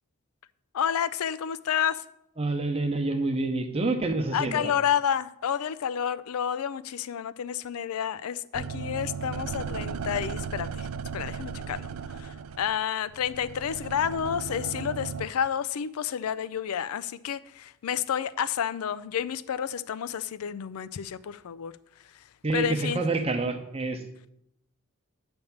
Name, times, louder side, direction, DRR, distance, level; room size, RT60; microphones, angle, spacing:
voice 1, 0.7-2.0 4.3-10.9 11.1-21.7 22.5-23.0, left 8 dB, 80° left, 15 dB, 0.4 m, -30 dB
voice 2, 2.4-4.7 22.4-24.0, right 2 dB, 25° right, 6 dB, 0.9 m, -27 dB
sound 1, 8.5-15.3, right 6 dB, 75° right, 0.4 m, -36 dB
9.3 x 3.5 x 7.0 m, 0.79 s
head